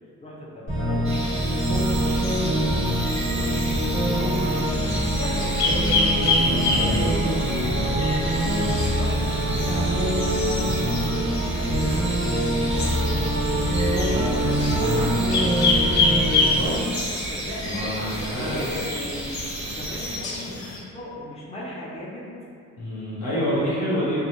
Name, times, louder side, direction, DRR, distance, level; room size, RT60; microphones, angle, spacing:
voice 1, 0.2-4.6 5.1-10.8 11.4-12.8 13.6-15.5 17.0-19.3 19.6-22.3 23.2-23.6, left 1 dB, 20° left, -6 dB, 0.6 m, -38 dB
sound 1, 0.7-16.7, right 1 dB, 45° left, 1.3 m, -24 dB
sound 2, 1.0-20.2, right 2 dB, 20° right, 0.4 m, -34 dB
sound 3, 1.1-20.8, left 3 dB, 60° left, 0.5 m, -29 dB
voice 2, 2.3-2.7 6.7-7.2 14.0-14.3 16.3-16.9 17.6-18.6 22.8-24.2, equal, 90° left, -9 dB, 0.9 m, -28 dB
2.4 x 2.3 x 2.9 m, 2.5 s
cardioid pair, 60°, 32 cm